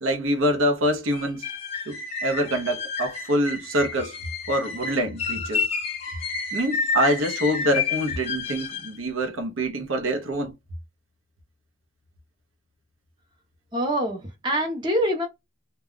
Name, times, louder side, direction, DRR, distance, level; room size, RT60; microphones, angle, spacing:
voice 1, 0.0-1.4 1.9-4.2 4.5-5.7 6.5-10.5, equal, 85° right, 0.8 m, -25 dB
sound 1, 1.1-9.0, left 5 dB, 30° left, 0.6 m, -30 dB
voice 2, 13.7-15.3, equal, 20° right, 0.7 m, -25 dB
2.3 x 2.2 x 3.6 m
head